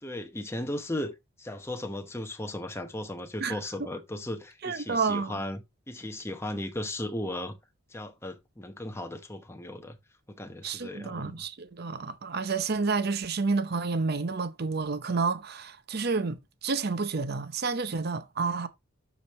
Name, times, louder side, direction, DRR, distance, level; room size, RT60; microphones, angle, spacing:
voice 1, 0.0-7.6 7.9-10.0 10.3-11.4, left 1 dB, 10° left, 0.9 m, -36 dB
voice 2, 4.6-5.4 10.6-18.7, right 4 dB, 45° right, 0.7 m, -30 dB
12.5 x 5.1 x 3.0 m
head